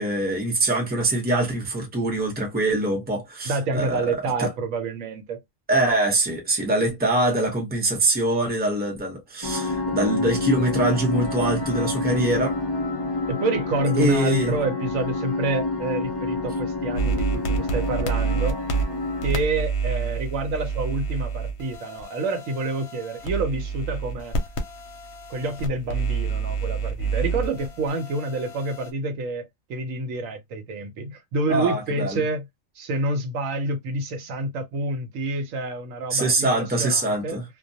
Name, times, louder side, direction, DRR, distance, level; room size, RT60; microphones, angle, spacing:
voice 1, 0.0-4.1 4.4-4.5 5.7-12.6 14.0-14.5 31.5-32.2 36.1-37.4, right 2 dB, 10° right, 0.6 m, -23 dB
voice 2, 3.4-5.4 13.3-18.6 19.2-24.3 25.3-32.4 32.8-37.4, right 2 dB, 80° right, 1.0 m, -28 dB
sound 1, 9.4-19.3, left 2 dB, 35° left, 0.3 m, -28 dB
sound 2, 16.9-28.9, right 5 dB, 60° left, 0.8 m, -29 dB
2.2 x 2.1 x 2.7 m
omnidirectional pair, 1.4 m